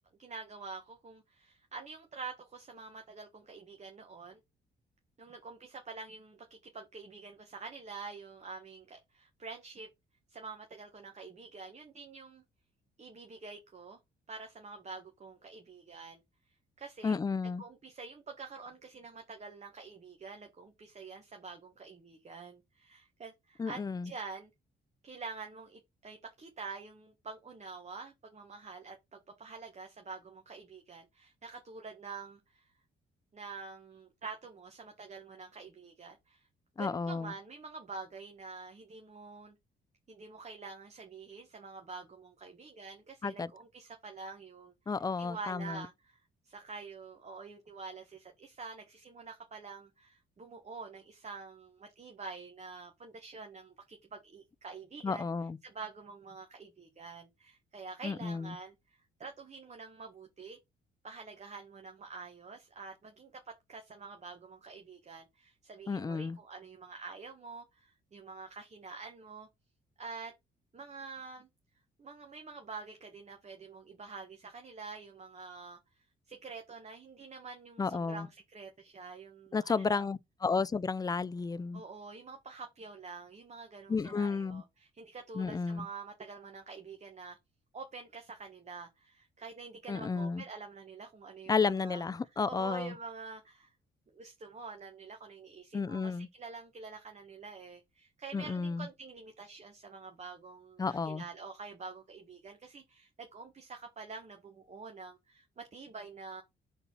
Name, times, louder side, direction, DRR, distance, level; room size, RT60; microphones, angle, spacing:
voice 1, 0.2-4.4 5.2-9.9 10.3-12.4 13.0-14.0 14.3-16.2 16.8-17.2 17.6-24.5 25.0-32.7 33.3-36.5 36.8-39.5 40.1-44.7 45.2-55.2 55.6-60.6 61.0-69.5 70.0-70.3 70.7-71.5 72.0-75.8 76.3-80.1 81.7-87.4 87.7-92.1 92.4-93.7 94.1-106.4, right 4 dB, 35° right, 1.3 m, -47 dB
voice 2, 17.0-17.6 23.6-24.1 36.8-37.3 43.2-43.5 44.9-45.9 55.0-55.6 58.0-58.5 65.9-66.4 77.8-78.3 79.5-81.8 83.9-84.6 85.3-85.9 89.9-90.4 91.5-92.9 95.7-96.3 98.3-98.9 100.8-101.2, left 4 dB, 20° left, 0.4 m, -32 dB
5.5 x 4.0 x 6.0 m
cardioid pair, 90°, 20 cm